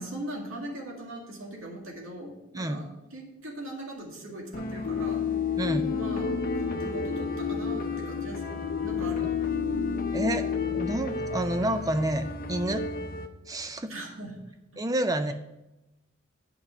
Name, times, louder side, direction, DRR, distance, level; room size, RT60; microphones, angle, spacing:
voice 1, 0.0-2.9 3.1-5.3 5.9-9.3 13.9-14.3, right 1 dB, 75° right, -1 dB, 2.1 m, -40 dB
voice 2, 2.5-2.9 5.6-5.9 9.2-9.3 10.1-12.9 13.5-13.9 14.8-15.3, right 1 dB, 15° right, 9 dB, 0.5 m, -29 dB
sound 1, 4.5-13.3, equal, 45° left, 0.7 m, -35 dB
sound 2, 4.8-11.0, left 9 dB, 70° left, 0.3 m, -30 dB
8.6 x 5.4 x 6.6 m, 0.97 s
head